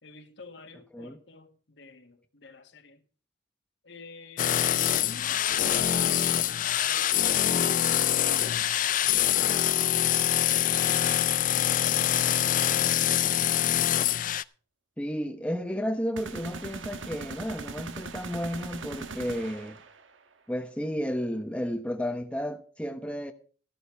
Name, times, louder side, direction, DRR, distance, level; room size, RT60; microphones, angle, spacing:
voice 1, 0.0-3.0 3.8-13.4, left 3 dB, 65° left, 1.9 m, -49 dB
sound 1, 4.4-14.4, left 11 dB, 45° left, 0.4 m, -25 dB
voice 2, 15.0-19.8 20.5-23.3, equal, 5° left, 0.9 m, -32 dB
sound 2, 16.2-20.1, right 4 dB, 85° right, 1.4 m, -40 dB
14.0 x 11.5 x 3.4 m
head